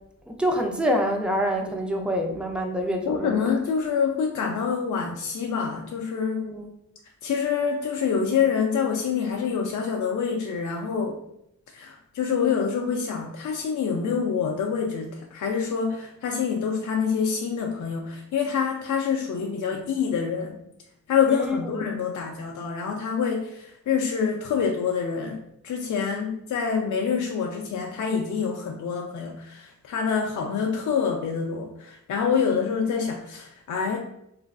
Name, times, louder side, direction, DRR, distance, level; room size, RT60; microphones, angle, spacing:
voice 1, 0.3-3.4 6.4-6.7 21.3-21.9, equal, 5° right, 2 dB, 0.5 m, -26 dB
voice 2, 3.1-6.5 7.2-11.2 11.7-20.6 21.1-34.0, left 6 dB, 60° left, 2 dB, 0.4 m, -26 dB
3.0 x 2.4 x 2.3 m, 0.78 s
cardioid pair, 60°, 34 cm